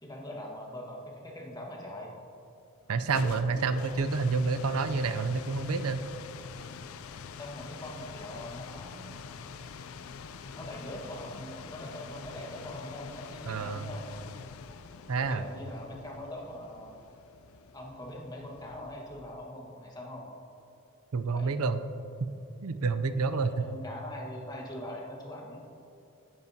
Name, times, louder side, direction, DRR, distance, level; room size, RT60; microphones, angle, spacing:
voice 1, 0.0-2.1 7.4-9.1 10.6-14.1 15.2-16.9 17.7-20.3 21.3-21.6 23.3-25.6, left 1 dB, 20° left, -2 dB, 1.4 m, -42 dB
sound 1, 2.8-19.6, left 5 dB, 70° left, 0.4 m, -45 dB
voice 2, 2.9-6.0 13.5-13.9 15.1-15.5 21.1-21.8 22.6-23.7, right 4 dB, 90° right, 11 dB, 0.5 m, -29 dB
10.5 x 9.4 x 2.8 m, 2.8 s
head